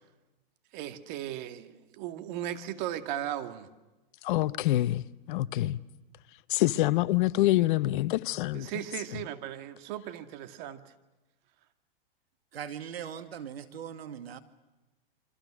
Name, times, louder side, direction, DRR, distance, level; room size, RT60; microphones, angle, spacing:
voice 1, 0.7-3.7 8.5-10.8, right 11 dB, 50° right, 2.2 m, -37 dB
voice 2, 4.2-5.8 6.5-8.7, left 16 dB, 55° left, 1.0 m, -26 dB
voice 3, 12.5-14.4, right 8 dB, 85° right, 2.3 m, -40 dB
28.0 x 25.0 x 6.3 m
hypercardioid pair, 125°, 30 cm